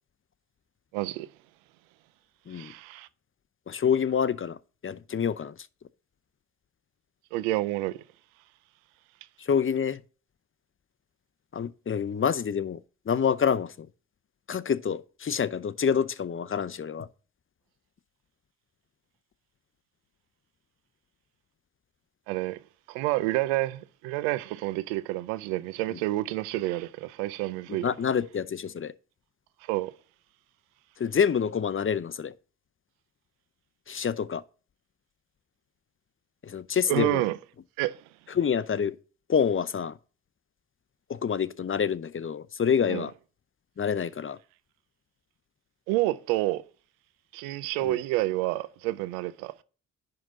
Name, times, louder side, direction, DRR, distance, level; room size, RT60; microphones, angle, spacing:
voice 1, 0.9-1.3 2.5-3.1 7.3-8.0 22.3-22.6 22.9-27.9 29.7-29.9 36.9-37.4 37.8-38.0 42.9-43.0 45.9-46.6 47.3-49.5, right 17 dB, 90° right, 0.6 m, -29 dB
voice 2, 3.7-4.6 4.8-5.5 9.4-10.0 11.5-12.8 13.1-13.9 14.5-17.1 25.9-26.0 27.7-28.9 31.0-32.3 33.9-34.4 36.4-37.2 38.4-39.0 39.3-40.0 41.1-43.1 43.8-44.4 47.8-48.0, left 7 dB, 35° left, 0.7 m, -27 dB
10.5 x 3.9 x 6.6 m
hypercardioid pair, 40°, 36 cm